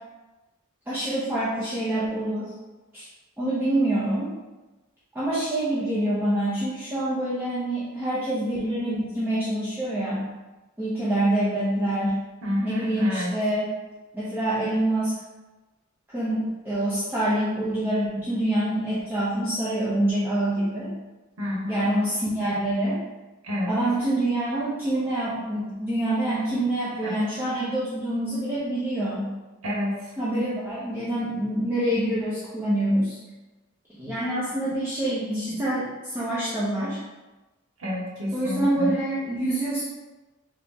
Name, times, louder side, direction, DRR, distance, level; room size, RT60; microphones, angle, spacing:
voice 1, 0.9-2.5 2.9-3.0 3.4-4.3 5.1-10.3 10.8-12.2 12.6-13.7 14.1-15.1 16.1-20.9 21.7-23.0 23.7-29.3 30.2-33.2 34.0-37.0 38.3-39.8, right 1 dB, 10° right, -11 dB, 0.7 m, -26 dB
voice 2, 12.4-13.3 21.4-21.9 23.4-23.8 27.0-27.2 29.6-30.1 37.8-38.9, left 1 dB, 90° right, -3 dB, 0.9 m, -29 dB
3.6 x 2.9 x 3.6 m, 1.1 s
head